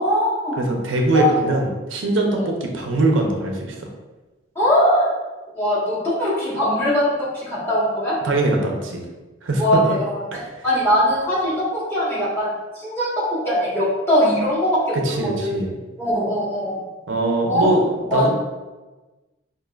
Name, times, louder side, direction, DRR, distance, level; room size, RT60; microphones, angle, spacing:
voice 1, 0.0-0.8 1.1-1.3 2.3-2.4 4.5-5.1 5.5-8.2 9.6-9.8 10.0-10.2 10.6-12.5 12.7-13.1 13.4-15.5 16.0-16.8 17.5-17.7 18.1-18.3, equal, 10° left, -9 dB, 1.3 m, -21 dB
voice 2, 0.6-3.8 8.2-9.0 9.4-10.0 10.3-10.4 14.9-15.7 17.1-18.3, right 2 dB, 85° right, 1 dB, 0.6 m, -22 dB
5.0 x 2.5 x 2.3 m, 1.2 s
head